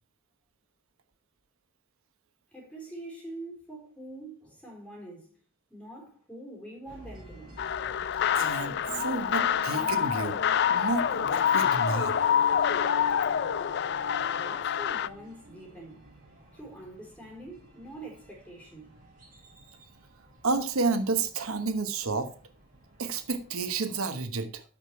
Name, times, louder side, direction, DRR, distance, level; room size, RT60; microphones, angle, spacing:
voice 1, 2.5-5.3 5.7-7.6 14.3-16.1 16.5-19.0, right 2 dB, 5° left, 4.0 m, -45 dB
sound 1, 6.8-23.8, right 1 dB, 45° right, 4.8 m, -54 dB
sound 2, 7.6-15.1, left 8 dB, 50° left, 0.3 m, -26 dB
voice 2, 8.3-10.4 10.7-12.2 20.4-22.3 23.0-24.6, right 3 dB, 90° right, 1.0 m, -30 dB
sound 3, 8.9-16.2, right 1 dB, 70° right, 1.3 m, -46 dB
8.8 x 6.1 x 4.7 m
head